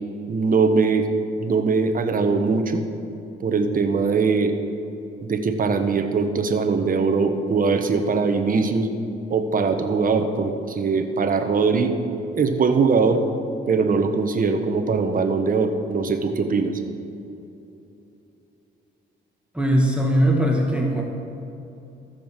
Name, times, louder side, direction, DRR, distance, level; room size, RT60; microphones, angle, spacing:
voice 1, 0.3-1.1 1.4-2.8 3.4-4.5 5.2-8.9 9.3-11.9 12.3-13.2 13.7-16.8, right 4 dB, 45° right, 7 dB, 1.3 m, -21 dB
voice 2, 19.5-21.0, equal, 5° right, -1 dB, 1.7 m, -20 dB
14.0 x 7.2 x 7.5 m, 2.9 s
cardioid pair, 90°, 20 cm